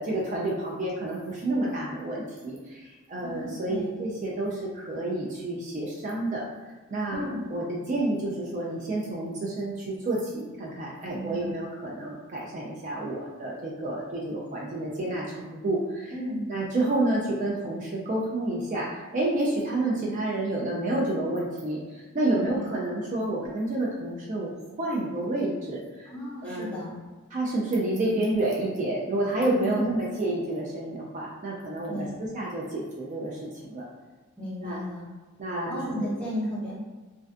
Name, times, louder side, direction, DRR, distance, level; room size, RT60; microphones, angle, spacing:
voice 1, 0.0-6.4 6.9-16.1 16.5-24.5 24.8-26.1 26.4-26.8 27.3-33.8 34.6-34.8 35.4-35.7, right 2 dB, 35° right, -4 dB, 0.3 m, -29 dB
voice 2, 3.2-4.0 7.1-7.4 11.1-11.5 16.1-16.5 22.5-22.6 26.1-26.9 29.4-29.8 31.8-32.2 34.4-35.1 35.7-36.7, equal, 5° left, -8 dB, 0.6 m, -34 dB
2.4 x 2.2 x 2.4 m, 1.3 s
head